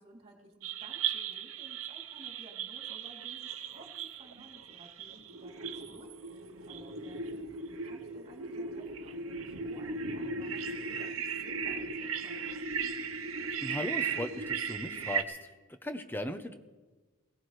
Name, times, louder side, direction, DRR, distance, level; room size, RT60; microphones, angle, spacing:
voice 1, 0.0-12.6, right 1 dB, 30° right, -1 dB, 2.9 m, -56 dB
sound 1, 0.6-15.2, right 5 dB, 70° right, 1.0 m, -37 dB
voice 2, 13.6-15.4 15.8-16.5, left 1 dB, 10° left, 8 dB, 0.8 m, -37 dB
21.5 x 17.5 x 3.3 m, 1.3 s
head